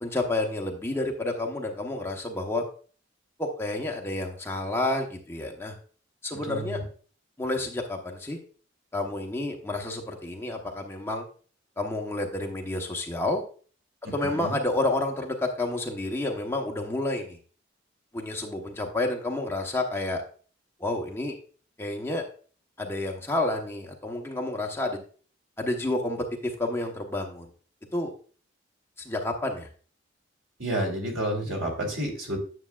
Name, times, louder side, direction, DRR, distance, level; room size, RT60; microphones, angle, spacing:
voice 1, 0.0-2.6 3.4-5.7 6.2-6.8 7.4-8.4 8.9-11.2 11.8-13.4 14.1-17.4 18.1-20.2 20.8-21.3 21.8-22.2 22.8-25.0 25.6-27.5 27.9-28.1 29.0-29.7, left 2 dB, 10° left, 1 dB, 0.9 m, -30 dB
voice 2, 6.3-6.8 14.0-14.6 30.6-32.4, right 1 dB, 85° right, 1 dB, 2.8 m, -30 dB
9.6 x 7.2 x 2.3 m, 0.41 s
head